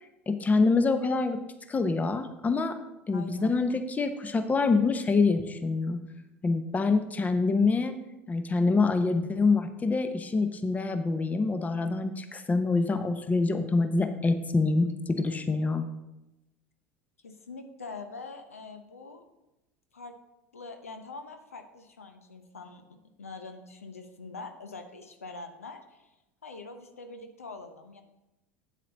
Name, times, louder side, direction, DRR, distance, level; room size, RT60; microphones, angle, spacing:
voice 1, 0.3-1.4 1.7-2.7 3.1-6.0 6.4-7.9 8.3-15.8, left 3 dB, 20° left, 9 dB, 0.9 m, -26 dB
voice 2, 3.1-3.5 17.2-19.2 19.9-20.1 20.5-22.8 23.2-26.1 26.4-28.0, left 3 dB, 90° left, 6 dB, 0.8 m, -44 dB
8.4 x 7.5 x 4.0 m, 0.96 s
hypercardioid pair, 75°, 7 cm